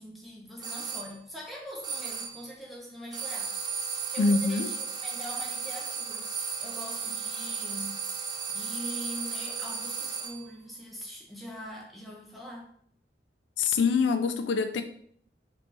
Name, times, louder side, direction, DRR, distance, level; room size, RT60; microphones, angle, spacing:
voice 1, 0.0-6.3 6.6-8.0 8.5-12.7, equal, ahead, -3 dB, 0.8 m, -43 dB
sound 1, 0.6-1.1 1.8-2.5 3.1-10.5, right 5 dB, 25° right, 0.4 m, -35 dB
voice 2, 4.2-4.7 13.6-14.8, left 4 dB, 85° left, 8 dB, 0.3 m, -25 dB
3.4 x 3.1 x 4.0 m, 0.63 s
head